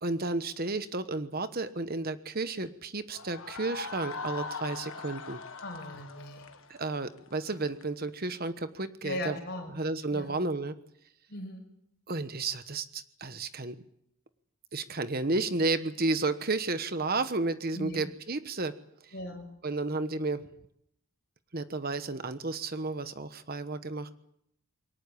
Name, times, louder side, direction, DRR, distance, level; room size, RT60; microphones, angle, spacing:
voice 1, 0.0-5.4 6.7-9.4 9.7-10.7 12.1-13.8 14.7-18.8 19.0-19.1 19.6-20.4 21.5-24.1, right 3 dB, 40° right, 11 dB, 1.2 m, -32 dB
sound 1, 3.1-7.9, left 4 dB, 65° left, 1.7 m, -41 dB
voice 2, 5.6-6.5 9.0-9.8 10.1-10.4 11.3-11.6 15.3-15.4 17.7-18.0 19.1-19.4, left 1 dB, 50° left, 4 dB, 6.3 m, -38 dB
23.0 x 19.0 x 8.6 m, 0.73 s
head